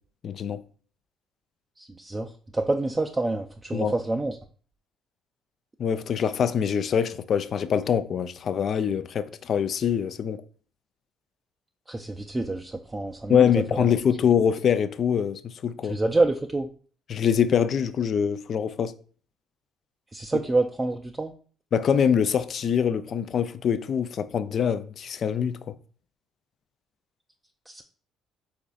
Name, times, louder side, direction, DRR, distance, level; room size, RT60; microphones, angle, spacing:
voice 1, 0.2-0.6 3.7-3.9 5.8-10.4 13.3-16.0 17.1-18.9 21.7-25.7, left 8 dB, 55° left, 0.4 m, -24 dB
voice 2, 1.8-4.4 11.9-13.9 15.9-16.7 20.1-21.3 27.7-27.8, right 2 dB, 20° right, 0.4 m, -27 dB
5.3 x 3.7 x 2.4 m
hypercardioid pair, 60°, 0 cm